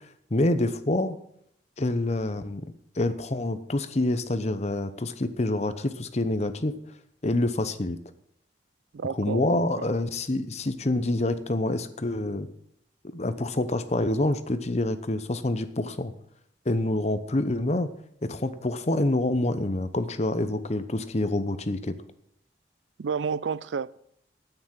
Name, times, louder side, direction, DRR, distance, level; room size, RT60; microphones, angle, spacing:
voice 1, 0.3-1.2 1.8-2.6 3.0-6.7 7.2-8.0 9.1-12.5 13.1-16.1 16.7-17.9 18.2-21.9, left 2 dB, 35° left, 0.8 m, -27 dB
voice 2, 8.9-9.9 23.0-24.0, right 6 dB, 85° right, 0.4 m, -31 dB
9.7 x 9.0 x 7.4 m
head